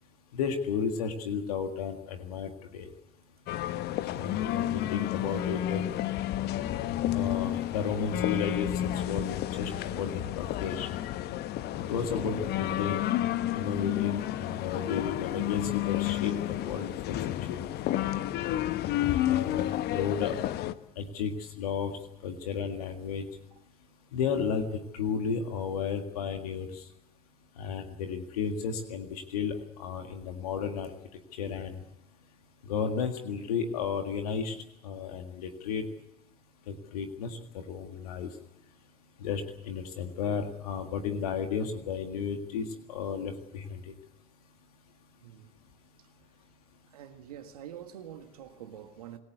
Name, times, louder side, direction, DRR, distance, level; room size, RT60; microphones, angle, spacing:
voice 1, 0.3-2.9 4.1-5.8 7.1-10.9 11.7-13.1 13.5-17.7 18.9-20.4 20.9-23.2 24.1-24.7 24.9-26.9 27.6-30.9 31.4-31.8 32.7-35.8 36.7-37.4 37.7-38.3 39.2-43.8, left 6 dB, 80° left, 1.8 m, -33 dB
sound 1, 3.5-20.7, left 13 dB, 60° left, 1.0 m, -31 dB
voice 2, 45.2-45.5 46.9-49.2, right 10 dB, 80° right, 1.7 m, -46 dB
26.5 x 16.5 x 8.1 m
hypercardioid pair, 60°, 19 cm